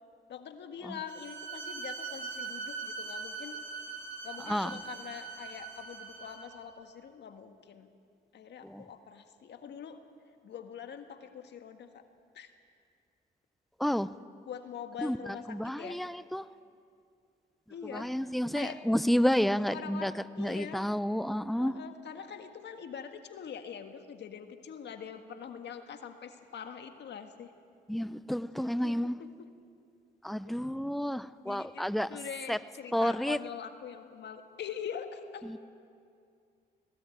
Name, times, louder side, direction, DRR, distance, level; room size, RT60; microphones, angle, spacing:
voice 1, 0.3-3.6 4.2-7.9 8.3-10.0 10.4-12.0 12.3-12.5 14.5-16.0 17.7-18.1 18.5-18.8 19.7-20.8 21.6-27.5 28.8-29.5 30.4-30.5 31.4-35.5, left 7 dB, 65° left, 7 dB, 1.7 m, -44 dB
Bowed string instrument, 1.1-6.6, right 4 dB, 85° right, 2.6 m, -41 dB
voice 2, 4.4-4.8 8.6-8.8 13.8-14.1 15.0-16.5 17.8-20.1 20.4-21.8 27.9-29.2 30.2-32.2 32.5-32.6 32.9-33.4 35.4-35.6, equal, ahead, 15 dB, 0.7 m, -30 dB
19.0 x 17.0 x 9.1 m, 2.4 s
supercardioid pair, 65°, 20 cm